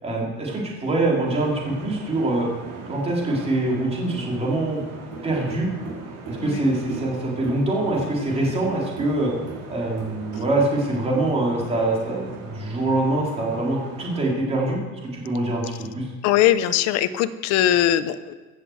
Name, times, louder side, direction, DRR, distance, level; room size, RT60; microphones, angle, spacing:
voice 1, 0.0-2.5 2.9-4.8 5.2-5.7 6.3-9.3 9.7-14.8 15.1-16.1, right 2 dB, 20° right, -3 dB, 3.5 m, -24 dB
sound 1, 1.3-14.3, right 3 dB, 70° right, 5.6 m, -39 dB
voice 2, 16.2-18.3, left 12 dB, 50° left, 13 dB, 0.9 m, -20 dB
16.0 x 8.4 x 7.9 m, 1.4 s
cardioid pair, 175°, 33 cm